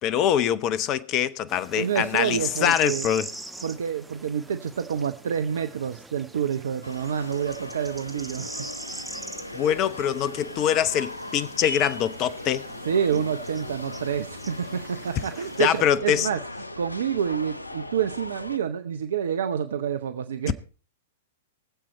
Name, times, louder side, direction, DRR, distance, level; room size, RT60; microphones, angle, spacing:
voice 1, 0.0-3.3 9.5-12.7 15.6-16.3 20.5-20.6, left 9 dB, 35° left, 0.8 m, -24 dB
sound 1, 1.5-15.8, right 2 dB, 5° right, 1.1 m, -43 dB
voice 2, 1.7-3.0 3.6-8.5 12.8-16.4 16.8-20.5, right 8 dB, 65° right, 0.7 m, -28 dB
sound 2, 6.8-18.6, left 1 dB, 90° left, 0.6 m, -38 dB
23.0 x 7.7 x 4.2 m
figure-of-eight pair, 100°, 0 cm